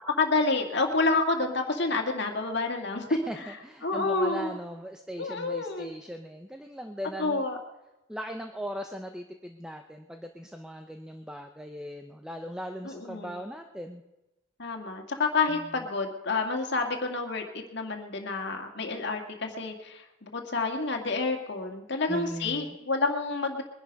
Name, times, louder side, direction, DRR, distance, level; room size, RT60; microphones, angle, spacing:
voice 1, 0.2-3.1 3.4-3.6 3.8-4.6 5.2-5.9 7.2-7.6 12.8-13.4 14.6-23.6, left 3 dB, 55° left, 3 dB, 2.0 m, -29 dB
voice 2, 3.1-7.4 8.1-14.0 22.1-22.8, equal, 5° right, 5 dB, 0.6 m, -39 dB
21.5 x 10.5 x 5.3 m, 1.0 s
head